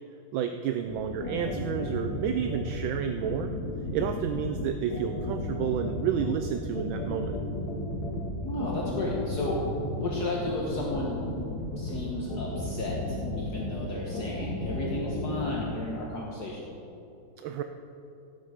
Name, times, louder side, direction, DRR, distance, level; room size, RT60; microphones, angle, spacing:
voice 1, 0.3-3.5 3.9-7.4 17.4-17.6, right 8 dB, 75° right, 7 dB, 1.3 m, -30 dB
sound 1, 0.9-15.6, left 2 dB, 75° left, 3.2 m, -33 dB
voice 2, 8.4-9.6 10.0-11.2 11.8-16.7, left 2 dB, 55° left, -3 dB, 1.7 m, -33 dB
17.0 x 9.0 x 5.0 m, 2.9 s
omnidirectional pair, 2.3 m